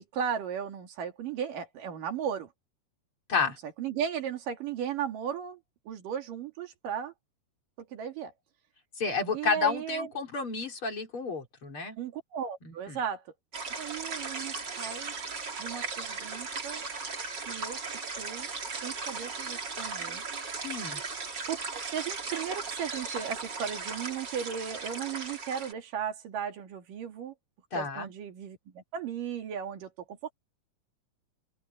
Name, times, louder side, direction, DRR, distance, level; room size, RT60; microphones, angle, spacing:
voice 1, 0.0-2.5 3.8-5.6 5.9-7.1 7.8-8.3 9.3-10.1 12.0-13.2 13.8-15.1 15.6-16.8 17.5-17.8 18.2-18.5 18.8-20.2 21.5-21.6 21.9-27.3 27.7-30.3, right 8 dB, 75° right, 3.9 m, -36 dB
voice 2, 9.0-12.0 12.6-13.0 20.6-21.0 27.7-28.1, left 5 dB, 40° left, 4.2 m, -31 dB
sound 1, 13.5-25.7, right 4 dB, 35° right, 2.8 m, -37 dB
open air
omnidirectional pair, 3.9 m